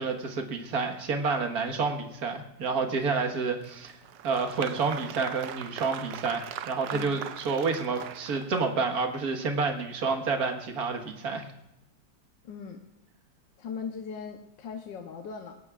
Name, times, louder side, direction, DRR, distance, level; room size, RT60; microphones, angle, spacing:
voice 1, 0.0-4.0 4.2-11.5, right 4 dB, 55° right, 4 dB, 1.9 m, -29 dB
Applause, 3.6-8.9, right 10 dB, 75° right, 1.4 m, -40 dB
voice 2, 12.4-12.8 13.6-15.6, left 6 dB, 80° left, 3 dB, 1.7 m, -39 dB
22.5 x 18.5 x 2.4 m, 0.87 s
omnidirectional pair, 2.0 m